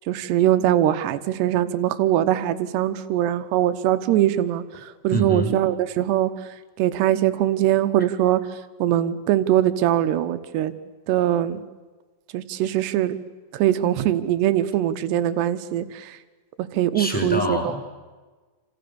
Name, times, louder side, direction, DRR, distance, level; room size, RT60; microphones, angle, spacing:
voice 1, 0.1-4.6 5.0-6.3 6.8-8.4 8.8-10.7 11.1-11.6 12.3-13.2 13.5-16.2 16.6-17.6, right 12 dB, 70° right, 11 dB, 2.9 m, -22 dB
voice 2, 5.1-5.6 16.9-17.8, right 1 dB, ahead, 2 dB, 4.5 m, -25 dB
28.5 x 28.0 x 7.1 m, 1.3 s
omnidirectional pair, 5.9 m